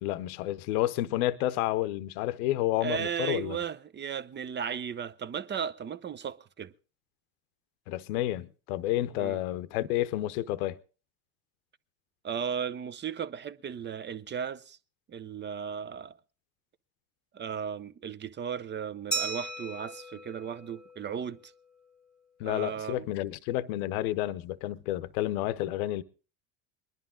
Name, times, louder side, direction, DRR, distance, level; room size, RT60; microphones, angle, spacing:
voice 1, 0.0-3.6 7.9-10.8 22.4-26.0, left 14 dB, 80° left, 0.8 m, -30 dB
voice 2, 2.8-6.7 9.2-9.4 12.2-14.8 15.1-16.2 17.3-21.5 22.4-23.1, right 7 dB, 25° right, 0.6 m, -35 dB
Glass, 19.1-21.6, right 3 dB, ahead, 1.2 m, -37 dB
21.5 x 11.0 x 3.7 m
supercardioid pair, 90°, 43 cm